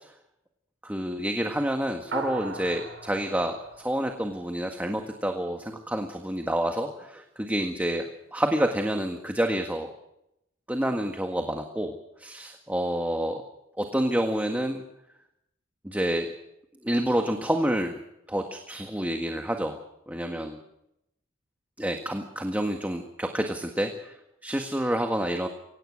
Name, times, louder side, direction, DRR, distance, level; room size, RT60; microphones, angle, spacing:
voice 1, 0.8-8.1 8.3-9.9 10.7-11.9 12.2-13.4 13.8-14.8 15.8-16.3 16.8-18.0 18.3-19.8 20.1-20.6 21.8-24.1 24.4-25.5, right 1 dB, 10° right, 4 dB, 1.7 m, -28 dB
sound 1, 2.1-4.8, right 3 dB, 75° right, 4.4 m, -39 dB
24.0 x 18.5 x 6.5 m, 0.81 s
head